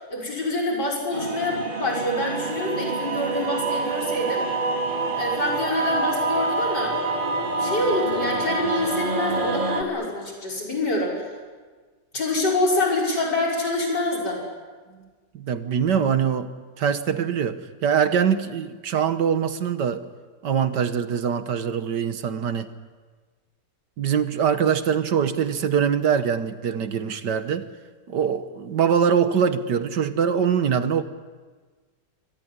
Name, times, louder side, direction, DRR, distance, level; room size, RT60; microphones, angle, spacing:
voice 1, 0.1-4.5 5.2-7.0 7.3-11.2 12.1-14.4, left 2 dB, 75° left, -2 dB, 6.3 m, -26 dB
sound 1, 1.1-9.8, right 3 dB, 30° right, 2.5 m, -26 dB
voice 2, 15.3-16.5 16.8-20.0 20.4-22.7 24.0-27.7 28.1-31.0, right 7 dB, 75° right, 11 dB, 1.8 m, -23 dB
24.5 x 18.5 x 9.9 m, 1.4 s
omnidirectional pair, 1.9 m